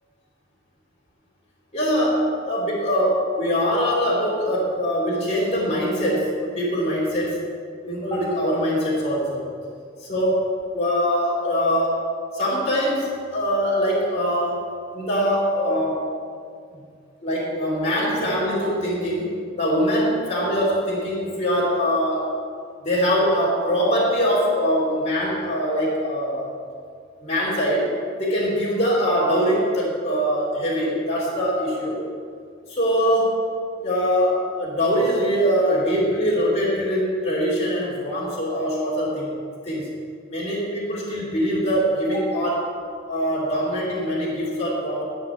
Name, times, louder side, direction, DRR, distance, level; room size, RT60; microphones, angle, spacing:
voice 1, 1.7-7.4 7.8-9.5 10.0-12.1 12.3-14.7 14.9-16.1 16.7-16.8 17.2-22.3 22.8-26.5 27.2-32.1 32.7-33.4 33.8-39.3 39.6-40.0 40.3-42.7 43.1-45.0, equal, 30° left, -7 dB, 2.7 m, -23 dB
12.0 x 5.4 x 7.9 m, 2.2 s
head